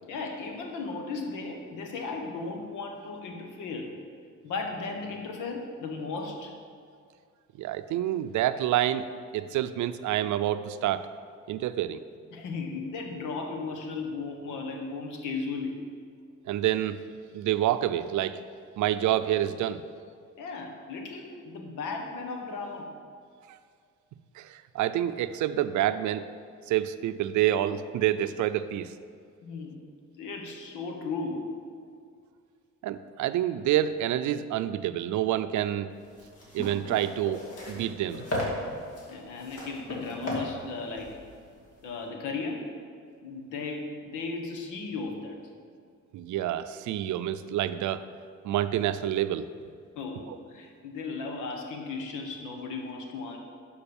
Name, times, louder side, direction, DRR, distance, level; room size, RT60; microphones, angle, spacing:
voice 1, 0.0-4.0 4.4-6.5 12.3-15.8 20.4-22.9 29.4-29.8 30.1-31.5 39.1-41.1 41.8-42.7 43.2-45.4 49.9-53.4, left 4 dB, 90° left, 3 dB, 1.4 m, -36 dB
voice 2, 7.6-9.1 9.3-11.1 11.5-12.0 16.5-17.0 17.3-18.4 18.8-19.8 23.5-23.6 24.4-26.3 26.7-28.9 32.8-35.9 36.5-38.2 46.1-48.0 48.4-49.5 50.3-50.4, right 12 dB, 75° right, 12 dB, 0.5 m, -28 dB
sound 1, 36.0-42.0, left 1 dB, 55° left, 2.7 m, -37 dB
11.5 x 5.2 x 5.4 m, 2.2 s
cardioid pair, 90°, 30 cm